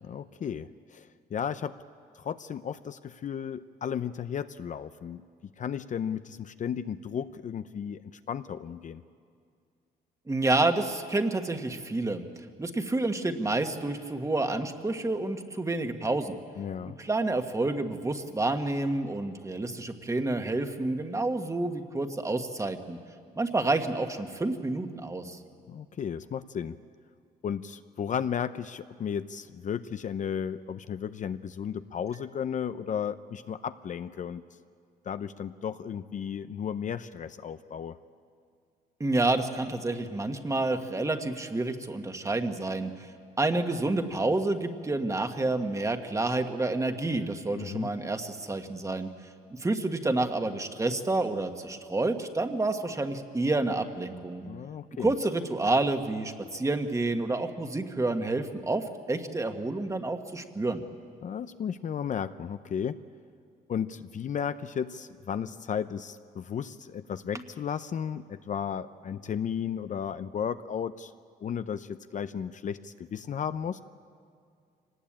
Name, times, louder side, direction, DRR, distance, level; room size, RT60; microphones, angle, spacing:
voice 1, 0.0-1.8 2.2-5.2 5.6-8.0 8.3-9.0 16.6-17.0 25.7-26.8 27.4-34.4 35.1-38.0 47.5-47.9 54.5-55.1 61.2-63.0 63.7-71.1 71.4-73.8, left 8 dB, 50° left, 12 dB, 0.6 m, -34 dB
voice 2, 10.3-12.2 12.6-16.4 16.8-23.0 23.3-25.4 39.0-42.9 43.4-49.1 49.5-54.4 55.0-60.8, right 2 dB, 20° right, 6 dB, 1.6 m, -29 dB
24.5 x 19.0 x 8.8 m, 2.3 s
cardioid pair, 105°, 17 cm